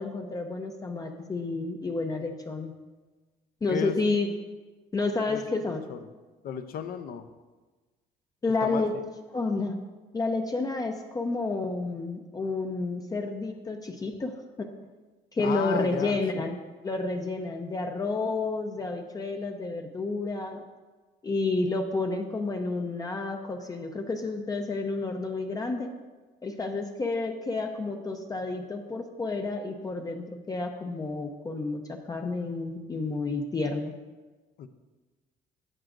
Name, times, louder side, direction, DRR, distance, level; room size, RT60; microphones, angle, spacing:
voice 1, 0.0-2.7 3.6-4.3 4.9-5.8 8.4-9.0 9.3-9.8 10.1-14.7 15.3-20.6 21.2-25.9 26.4-33.9, left 3 dB, 20° left, 3 dB, 0.6 m, -30 dB
voice 2, 3.7-4.1 5.3-5.6 5.9-6.1 6.4-7.3 8.6-8.8 15.4-16.4 34.6-34.7, left 8 dB, 60° left, 10 dB, 0.6 m, -34 dB
10.5 x 7.8 x 2.6 m, 1.3 s
cardioid pair, 110°, 17 cm